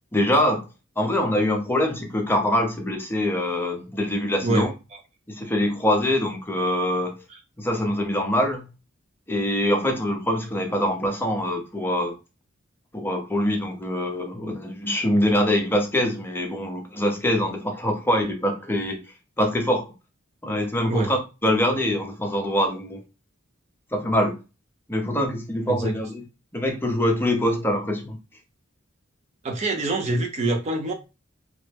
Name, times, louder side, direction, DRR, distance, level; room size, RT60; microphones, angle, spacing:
voice 1, 0.1-0.6 1.0-4.7 5.3-7.2 7.6-8.6 9.3-12.2 12.9-19.0 19.4-19.9 20.4-23.0 23.9-24.4 24.9-26.2 26.5-28.2, left 1 dB, 10° left, 0.6 m, -24 dB
voice 2, 29.4-30.9, right 2 dB, 35° right, 0.4 m, -25 dB
3.1 x 2.0 x 3.3 m
head